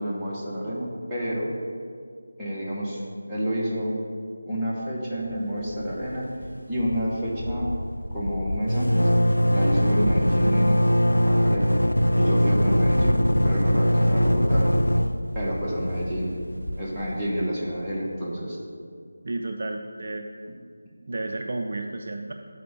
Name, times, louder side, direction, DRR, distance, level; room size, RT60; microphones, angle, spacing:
voice 1, 0.0-1.5 2.4-4.0 4.5-6.3 6.7-7.7 8.1-9.1 9.5-11.8 12.1-14.7 15.3-16.4 16.8-18.6, equal, 5° right, -12 dB, 1.2 m, -29 dB
sound 1, 5.6-6.1 6.4-6.5 6.8-17.5, equal, 80° left, 0.4 m, -22 dB
voice 2, 19.2-20.3 21.1-22.3, right 2 dB, 45° right, 4 dB, 0.4 m, -31 dB
6.6 x 4.7 x 6.8 m, 2.2 s
figure-of-eight pair, 160°, 0 cm